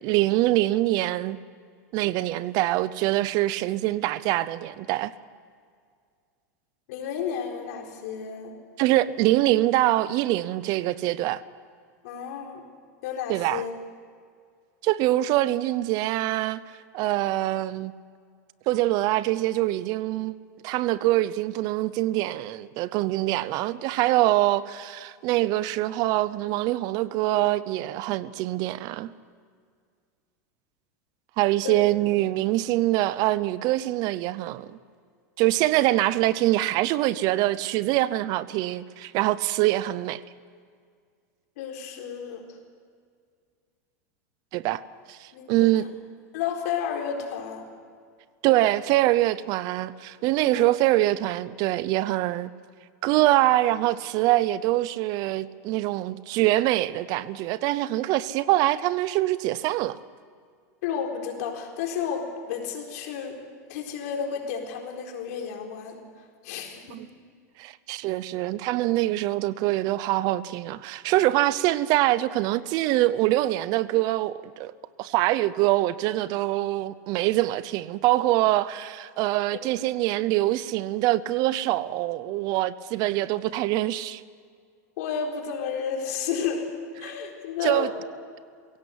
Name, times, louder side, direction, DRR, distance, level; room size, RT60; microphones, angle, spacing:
voice 1, 0.0-1.4 1.9-5.1 8.8-11.4 13.3-13.7 14.8-16.6 16.9-17.9 18.7-20.3 20.6-29.1 31.4-34.7 35.4-40.2 44.5-44.8 45.1-45.9 48.4-52.5 53.0-60.0 66.9-67.1 67.6-74.7 75.0-84.2 87.6-87.9, right 16 dB, 50° right, 0.7 m, -24 dB
voice 2, 6.9-8.5 12.0-12.6 13.0-13.7 31.6-31.8 41.6-42.5 45.3-45.7 46.3-47.7 50.5-50.6 60.8-63.4 63.7-66.0 66.4-67.0 79.5-79.6 85.0-86.7 87.0-87.9, left 7 dB, 70° left, 4.1 m, -32 dB
22.0 x 17.0 x 8.2 m
supercardioid pair, 135°, 9 cm